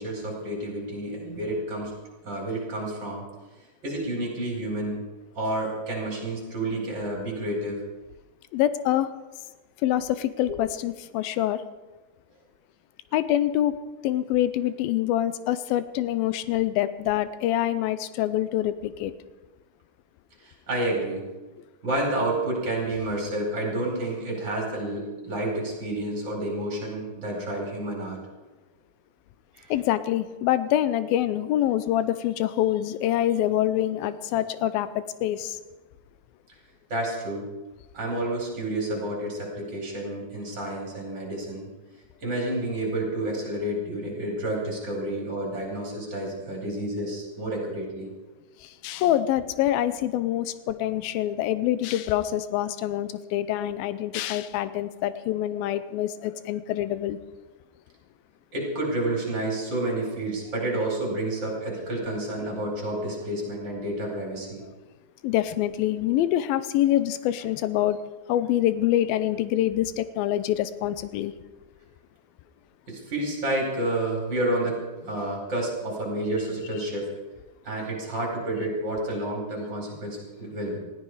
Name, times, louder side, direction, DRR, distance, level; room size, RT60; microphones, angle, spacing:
voice 1, 0.0-1.9 2.2-3.2 3.8-5.0 5.4-7.8 10.5-10.6 20.4-21.2 21.8-28.2 29.5-29.7 36.9-37.5 37.9-41.7 42.2-48.1 58.5-64.6 72.9-77.1 77.6-80.8, right 1 dB, 30° right, 0 dB, 5.2 m, -30 dB
voice 2, 8.5-9.1 9.8-11.6 13.1-13.8 14.0-19.1 29.7-35.6 48.6-57.2 65.2-68.0 68.3-71.3, left 12 dB, 90° left, 14 dB, 2.5 m, -25 dB
19.5 x 14.5 x 4.9 m, 1.2 s
omnidirectional pair, 4.2 m